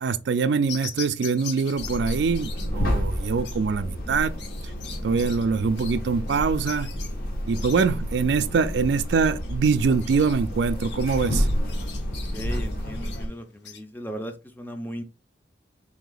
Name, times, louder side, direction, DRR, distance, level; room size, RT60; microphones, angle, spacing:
voice 1, 0.0-4.3 5.0-6.9 7.5-11.5, right 5 dB, 70° right, 0.4 m, -24 dB
sound 1, 0.7-13.8, left 7 dB, 75° left, 0.9 m, -42 dB
sound 2, 1.8-13.3, equal, 55° left, 1.1 m, -30 dB
voice 2, 12.1-15.0, equal, 10° left, 0.5 m, -37 dB
3.6 x 2.8 x 3.9 m
head